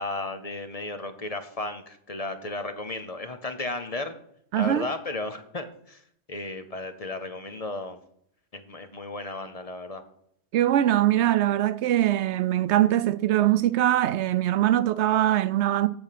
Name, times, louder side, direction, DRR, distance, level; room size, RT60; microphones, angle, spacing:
voice 1, 0.0-4.2 4.6-6.0 6.3-8.0 8.5-10.0, left 2 dB, 35° left, 0.9 m, -34 dB
voice 2, 4.5-4.9 10.5-15.9, right 12 dB, 85° right, 0.9 m, -22 dB
14.0 x 5.0 x 5.8 m
omnidirectional pair, 1.1 m